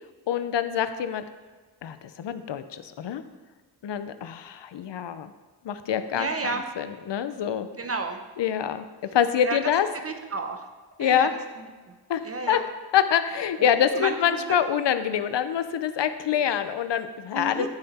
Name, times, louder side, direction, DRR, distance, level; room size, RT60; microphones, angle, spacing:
voice 1, 0.3-1.2 1.8-3.2 3.8-5.3 5.6-6.3 6.8-7.7 8.4-8.9 9.1-9.9 11.0-11.3 12.1-12.6 12.9-17.7, left 9 dB, 90° left, 11 dB, 0.7 m, -25 dB
voice 2, 6.1-6.6 7.8-8.2 9.4-9.6 10.0-10.7 11.0-11.3 11.6-11.9 12.2-12.6 13.6-14.4 17.3-17.7, right 3 dB, 35° right, 5 dB, 0.9 m, -32 dB
12.5 x 5.7 x 4.2 m, 1.3 s
wide cardioid pair, 125°, 41 cm